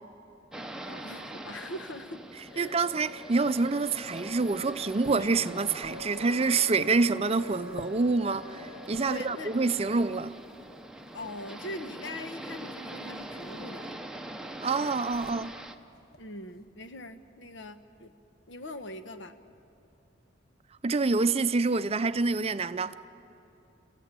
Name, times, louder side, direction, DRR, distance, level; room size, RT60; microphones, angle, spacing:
sound 1, 0.5-15.8, right 1 dB, 5° right, 0.8 m, -43 dB
voice 1, 0.8-2.8 9.0-9.6 11.1-14.0 16.2-18.1 18.5-19.4, left 1 dB, 80° left, 1.1 m, -42 dB
Wind instrument woodwind instrument, 2.5-10.2, left 4 dB, 35° left, 3.1 m, -46 dB
voice 2, 2.6-10.3 14.6-15.5 20.8-22.9, right 4 dB, 30° right, 0.5 m, -27 dB
sound 2, 3.9-9.1 10.0-11.4 12.6-12.7 13.0-14.2 14.4-16.7, left 1 dB, 55° left, 1.4 m, -49 dB
30.0 x 15.0 x 9.0 m
head